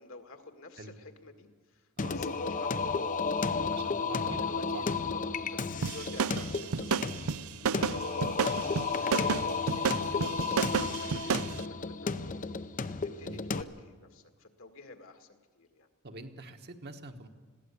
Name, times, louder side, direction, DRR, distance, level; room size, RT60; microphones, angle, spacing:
voice 1, 0.0-3.3 3.7-7.2 7.6-12.5 12.9-15.9 16.4-16.5, left 3 dB, 65° left, 6 dB, 1.9 m, -50 dB
Singing, 2.0-13.6, left 4 dB, 40° left, 0.7 m, -33 dB
voice 2, 3.7-4.4 5.4-5.7 13.2-13.4 16.0-17.3, right 3 dB, 50° right, 5 dB, 1.3 m, -45 dB
sound 1, 5.8-11.6, right 6 dB, 80° right, 0.5 m, -31 dB
21.0 x 16.0 x 8.3 m, 1.5 s
head